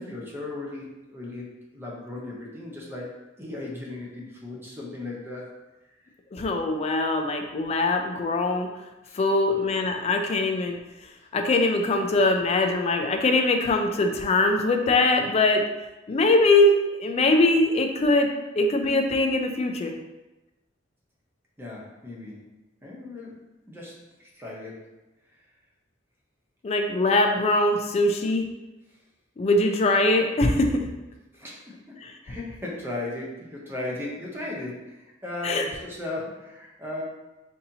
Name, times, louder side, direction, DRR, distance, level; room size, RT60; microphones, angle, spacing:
voice 1, 0.0-1.5 1.7-5.5 9.0-9.2 11.2-11.3 21.6-22.5 22.8-24.9 31.3-32.0 32.2-37.0, left 2 dB, 10° right, -4 dB, 0.7 m, -37 dB
voice 2, 6.3-8.7 9.1-10.8 11.3-15.6 16.1-18.3 18.6-20.0 26.6-28.5 29.4-30.9 32.0-32.1 35.4-35.6, left 2 dB, 30° left, 4 dB, 0.3 m, -22 dB
4.0 x 2.7 x 2.7 m, 1.0 s
head